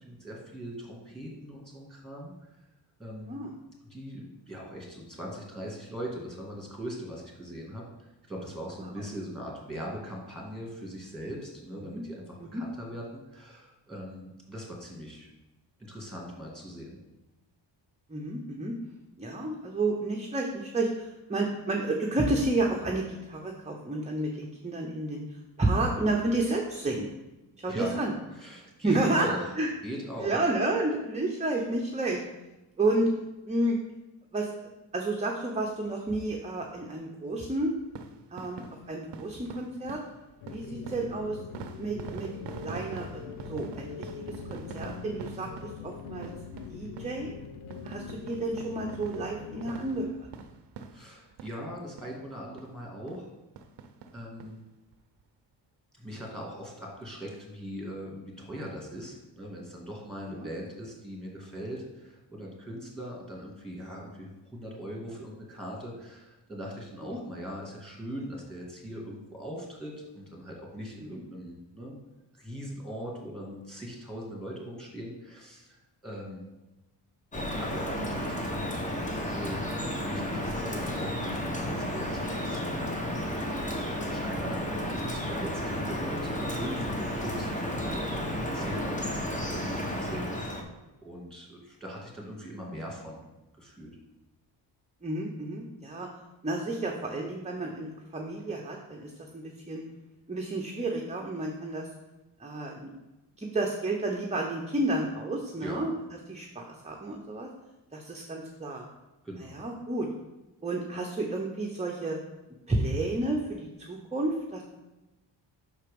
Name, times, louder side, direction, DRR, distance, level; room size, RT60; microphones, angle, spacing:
voice 1, 0.0-2.5 3.0-3.4 3.9-7.8 8.3-15.3 15.8-17.0 27.7-28.0 28.3-29.4 29.8-30.4 50.9-53.3 54.1-54.6 55.9-72.0 72.3-76.4 77.6-79.8 80.0-82.9 83.2-90.6 91.0-93.2 93.6-93.9 105.6-105.8 109.2-109.6, equal, ahead, -2 dB, 2.4 m, -40 dB
voice 2, 18.1-18.7 19.2-25.2 25.6-27.1 27.6-28.1 28.8-29.7 30.2-32.2 32.8-33.1 33.5-33.8 34.3-34.5 34.9-37.7 38.3-40.0 40.5-41.4 41.8-42.3 42.6-44.1 44.5-45.5 45.8-47.3 47.8-50.1 60.3-60.5 67.1-67.2 71.1-71.2 95.0-96.1 96.4-99.8 100.3-101.9 102.4-102.9 103.4-105.9 106.3-107.5 107.9-108.8 109.4-110.1 110.6-112.2 112.7-114.6, right 2 dB, 15° right, 0 dB, 0.8 m, -31 dB
sound 1, 37.8-51.7 52.0-52.2 52.6-52.7 53.1-53.2 53.6-54.5 54.9-55.0 55.2-55.3, right 5 dB, 65° right, 0.7 m, -45 dB
sound 2, 40.4-50.1, left 6 dB, 90° left, 0.6 m, -43 dB
Drip, 77.3-90.6, equal, 15° left, 1.1 m, -32 dB
5.9 x 4.5 x 5.2 m, 1.0 s
cardioid pair, 75°, 45 cm